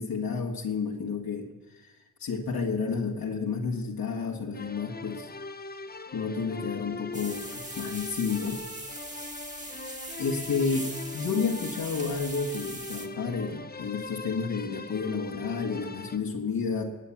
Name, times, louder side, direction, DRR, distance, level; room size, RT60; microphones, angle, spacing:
voice 1, 0.0-1.5 1.8-1.9 2.2-5.3 6.1-8.6 10.2-16.8, left 5 dB, 75° left, -1 dB, 1.8 m, -31 dB
sound 1, 4.5-16.2, left 3 dB, 25° left, 1.1 m, -41 dB
sound 2, 7.1-13.1, right 2 dB, 20° right, 2.4 m, -40 dB
20.5 x 8.5 x 7.2 m, 1.2 s
supercardioid pair, 45°, 36 cm